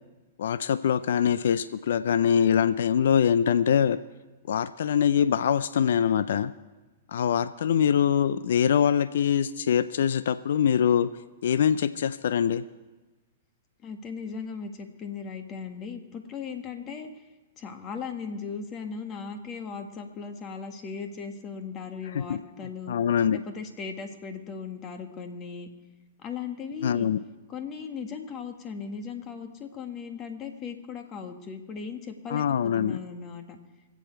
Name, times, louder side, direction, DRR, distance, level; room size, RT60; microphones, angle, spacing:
voice 1, 0.4-4.0 4.5-6.5 7.1-11.1 11.4-12.6 22.0-23.4 26.8-27.2 32.3-33.0, left 8 dB, 75° left, 14 dB, 0.4 m, -24 dB
voice 2, 13.8-17.1 17.6-22.9 23.3-25.7 26.2-27.1 27.5-33.6, left 5 dB, 30° left, 6 dB, 1.6 m, -37 dB
25.0 x 8.4 x 4.5 m, 1.2 s
hypercardioid pair, 125°, 0 cm